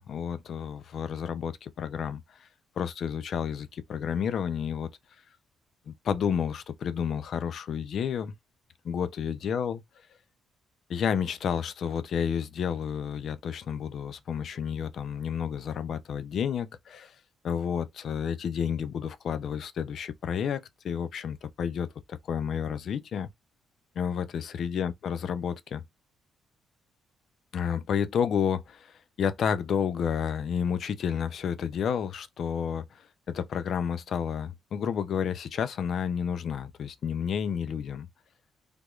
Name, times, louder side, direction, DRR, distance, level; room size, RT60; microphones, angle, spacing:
voice 1, 0.0-2.2 2.8-4.9 5.9-8.3 8.8-9.8 10.9-17.1 17.4-23.3 24.0-25.8 27.5-33.0 33.3-38.1, left 7 dB, 60° left, 0.5 m, -30 dB
3.4 x 3.0 x 2.3 m
cardioid pair, 90°, 0 cm